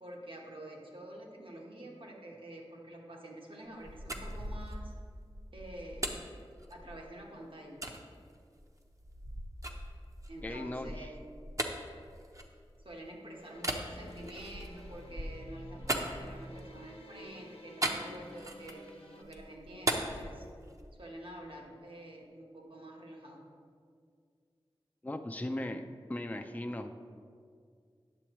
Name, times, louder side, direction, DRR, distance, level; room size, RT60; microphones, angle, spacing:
voice 1, 0.0-4.9 5.5-6.0 6.7-7.8 10.3-11.2 12.8-18.8 19.2-20.5 20.9-23.4, right 1 dB, 60° right, -1 dB, 1.2 m, -48 dB
sound 1, 3.7-7.2 7.8-8.0 8.6-13.0 13.6-16.8 17.8-18.9 19.2-21.0, right 1 dB, 35° right, 0.7 m, -39 dB
voice 2, 10.4-11.1 25.0-25.8 26.1-26.9, left 1 dB, 15° left, 5 dB, 0.4 m, -37 dB
sound 2, 13.3-19.2, left 1 dB, 70° left, 0.9 m, -51 dB
9.9 x 6.9 x 3.0 m, 2.2 s
wide cardioid pair, 65°, 10 cm